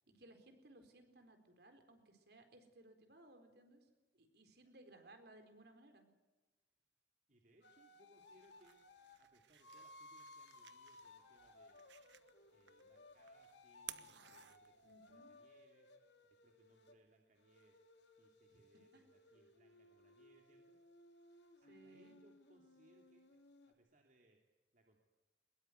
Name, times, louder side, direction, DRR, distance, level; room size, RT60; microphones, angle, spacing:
voice 1, 0.1-3.9 4.1-6.1 14.8-15.3 18.5-18.6 18.9-19.0 21.7-22.2, right 1 dB, 65° right, 6 dB, 4.3 m, -62 dB
voice 2, 7.3-11.9 12.5-17.8 18.2-21.3 21.6-23.4 23.7-24.4 24.7-25.0, right 1 dB, 50° right, 1 dB, 2.8 m, -71 dB
sound 1, 7.6-9.2 9.6-17.0 17.4-23.7, left 2 dB, 75° left, 3.0 m, -62 dB
sound 2, 8.2-15.2, right 12 dB, 85° right, 1.2 m, -58 dB
22.5 x 21.5 x 9.5 m, 1.2 s
head